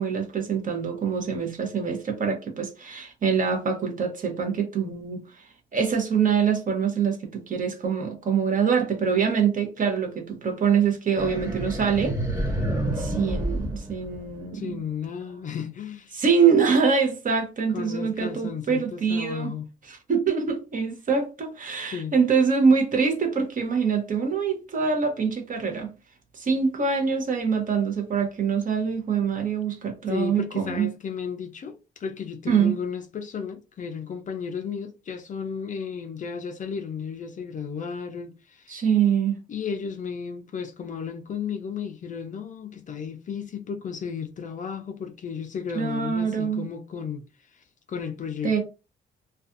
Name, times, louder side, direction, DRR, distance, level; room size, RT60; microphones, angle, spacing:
voice 1, 0.0-5.2 5.7-12.2 13.0-14.6 16.1-19.5 19.9-25.9 26.3-30.9 32.5-32.7 38.7-39.4 45.7-46.6 48.4-48.6, right 6 dB, 45° right, 0.8 m, -24 dB
sound 1, 11.2-14.6, right 1 dB, 15° right, 1.3 m, -29 dB
voice 2, 14.5-16.2 17.7-19.7 21.9-22.1 30.1-38.8 39.5-47.2 47.5-48.6, left 6 dB, 40° left, 0.4 m, -34 dB
2.4 x 2.3 x 2.5 m
cardioid pair, 90°, 20 cm